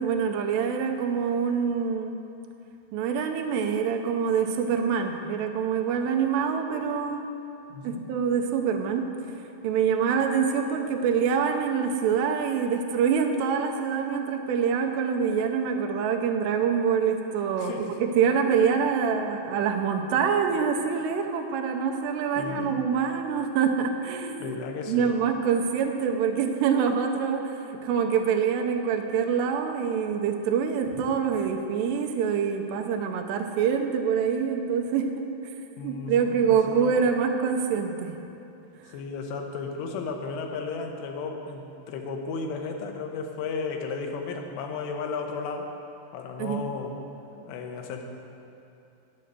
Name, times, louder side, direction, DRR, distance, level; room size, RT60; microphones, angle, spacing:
voice 1, 0.0-2.2 2.9-7.3 7.8-9.1 9.4-17.7 18.0-24.6 24.9-35.3 35.8-38.2 38.8-38.9 46.4-46.6, right 6 dB, 90° right, 4 dB, 2.9 m, -25 dB
voice 2, 7.7-8.1 17.6-17.9 22.4-22.8 24.4-25.1 30.9-31.0 35.8-37.0 38.9-45.7 46.1-46.9 47.5-48.0, left 4 dB, 85° left, 3 dB, 3.1 m, -34 dB
9.7 x 7.6 x 6.6 m, 2.8 s
omnidirectional pair, 4.8 m